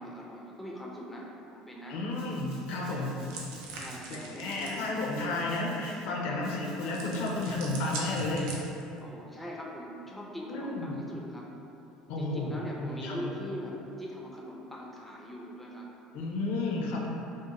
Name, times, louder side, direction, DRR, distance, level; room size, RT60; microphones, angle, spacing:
voice 1, 0.0-2.0 3.7-4.8 6.2-6.4 9.0-11.5 12.2-15.9, equal, 5° left, -4 dB, 0.4 m, -42 dB
voice 2, 1.9-3.2 4.1-8.6 10.5-11.0 12.1-13.3 16.1-17.1, left 2 dB, 75° left, -2 dB, 0.4 m, -32 dB
Domestic sounds home sounds, 2.1-4.0 4.4-6.1 6.4-8.4, right 2 dB, 55° right, 0.7 m, -55 dB
sound 1, 3.3-4.8 6.9-9.0, right 2 dB, 90° right, 0.4 m, -41 dB
2.5 x 2.1 x 2.8 m, 2.9 s
supercardioid pair, 105°, 2 cm